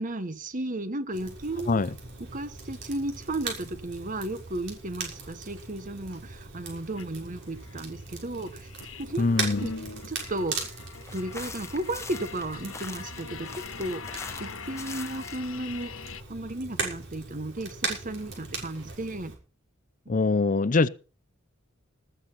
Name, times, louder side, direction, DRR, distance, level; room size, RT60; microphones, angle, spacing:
voice 1, 0.0-1.8 2.3-8.7 9.0-9.3 9.6-9.7 10.1-10.6 11.1-13.5 13.8-15.9 16.3-19.3, right 1 dB, 40° right, 1.4 m, -34 dB
Crackle, 1.1-19.3, right 4 dB, 65° right, 6.4 m, -39 dB
sound 1, 7.0-7.1 7.5-16.2, left 5 dB, 85° left, 1.0 m, -42 dB
voice 2, 9.2-9.7 20.1-20.9, left 3 dB, 40° left, 0.6 m, -23 dB
sound 2, 10.9-15.6, left 4 dB, 15° left, 1.2 m, -44 dB
19.5 x 8.0 x 5.6 m
head